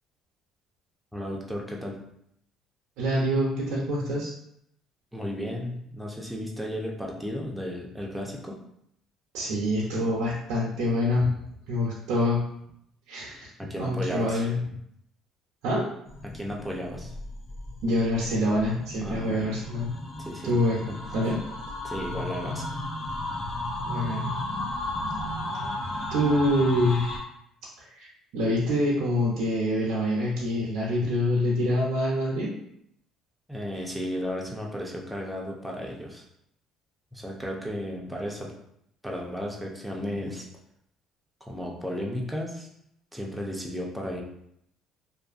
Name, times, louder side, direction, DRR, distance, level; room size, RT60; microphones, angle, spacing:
voice 1, 1.1-2.0 5.1-8.6 13.6-14.4 16.2-17.1 19.0-19.5 20.2-20.5 20.9-21.2 21.8-22.7 33.5-36.2 37.1-38.5 39.0-40.5 41.4-42.7 43.1-44.2, equal, 5° right, -2 dB, 0.6 m, -34 dB
voice 2, 3.0-4.3 9.3-11.3 11.7-12.4 13.1-13.5 13.8-14.6 15.6-15.8 17.8-19.9 20.4-20.8 21.1-21.4 23.8-24.3 25.6-25.7 26.1-27.0 27.8-28.1 28.3-32.5, left 1 dB, 80° right, -5 dB, 0.6 m, -25 dB
sound 1, 16.1-27.2, left 1 dB, 50° left, 0.7 m, -34 dB
2.6 x 2.5 x 2.5 m, 0.73 s
cardioid pair, 105°, 0 cm